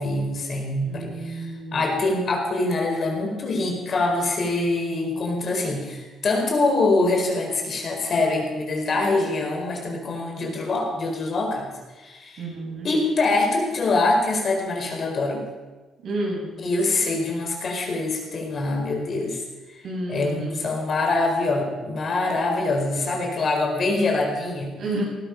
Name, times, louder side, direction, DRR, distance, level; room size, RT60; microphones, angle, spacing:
voice 1, 0.0-11.7 12.0-12.4 12.8-15.4 16.6-19.4 20.1-24.7, left 2 dB, 50° left, 1 dB, 4.7 m, -24 dB
voice 2, 0.8-1.8 12.4-12.9 16.0-16.5 19.8-20.5 24.8-25.0, right 2 dB, 65° right, -2 dB, 7.4 m, -30 dB
18.5 x 13.0 x 5.4 m, 1.2 s
cardioid pair, 90°, 0 cm